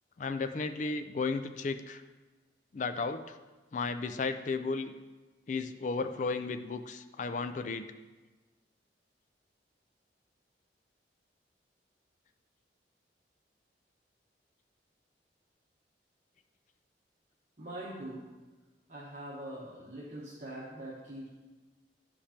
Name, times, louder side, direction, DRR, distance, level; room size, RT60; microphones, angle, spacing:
voice 1, 0.2-2.0 2.7-3.4 3.7-4.9 5.5-7.9, left 4 dB, 45° left, 9 dB, 0.3 m, -34 dB
voice 2, 17.6-18.2 18.9-21.3, right 1 dB, 45° right, -8 dB, 1.3 m, -43 dB
11.5 x 5.0 x 2.9 m, 1.2 s
head